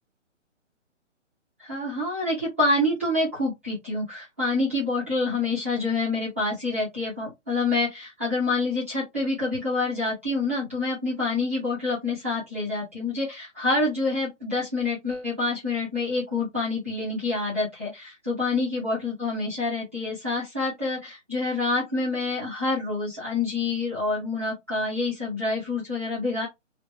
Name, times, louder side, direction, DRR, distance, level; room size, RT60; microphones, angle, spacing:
voice 1, 1.6-26.5, left 3 dB, 10° right, 0.8 m, -27 dB
3.2 x 2.5 x 3.1 m
hypercardioid pair, 180°, 38 cm